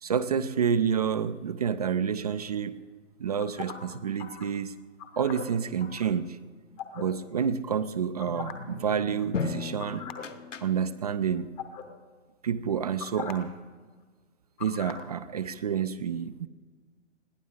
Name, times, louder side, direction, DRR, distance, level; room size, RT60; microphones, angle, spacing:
voice 1, 0.0-2.8 3.2-4.7 5.2-6.4 6.9-10.1 10.6-11.5 12.4-13.5 14.6-16.5, right 7 dB, 35° right, 14 dB, 0.4 m, -29 dB
sound 1, 3.4-4.4 5.0-6.0 6.8-7.0 8.2-8.7 9.0-9.2 9.8-10.2 10.6-10.8 11.6-11.8 13.0-13.3 14.6-15.0, left 8 dB, 15° left, 0.9 m, -40 dB
sound 2, 8.3-11.2, left 5 dB, 75° left, 1.0 m, -37 dB
21.5 x 15.5 x 3.7 m, 1.4 s
figure-of-eight pair, 125°, 37 cm